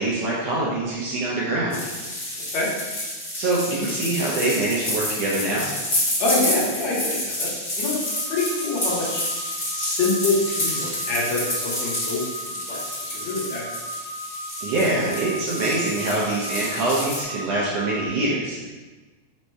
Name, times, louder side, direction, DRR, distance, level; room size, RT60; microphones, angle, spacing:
voice 1, 0.0-1.8 3.4-5.6 14.6-18.7, right 2 dB, 75° right, -6 dB, 1.6 m, -24 dB
sound 1, 1.7-17.2, left 1 dB, 45° left, 0.7 m, -29 dB
voice 2, 6.2-8.0 8.3-9.2 9.7-12.2 12.7-12.8 13.1-13.6, left 3 dB, 70° left, -5 dB, 2.2 m, -25 dB
sound 2, 8.0-18.1, equal, 55° right, 1.1 m, -37 dB
5.3 x 2.1 x 4.5 m, 1.3 s
omnidirectional pair, 3.4 m